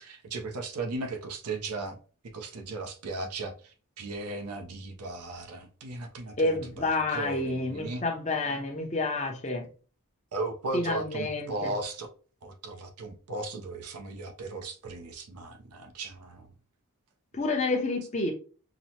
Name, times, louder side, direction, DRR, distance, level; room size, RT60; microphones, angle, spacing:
voice 1, 0.0-2.0 2.3-6.6 7.1-8.0 10.3-12.1 12.4-16.5, right 2 dB, 90° right, 0.6 m, -36 dB
voice 2, 6.4-9.7 10.7-11.7 17.3-18.3, left 2 dB, 30° left, 0.8 m, -29 dB
5.9 x 2.1 x 2.8 m
head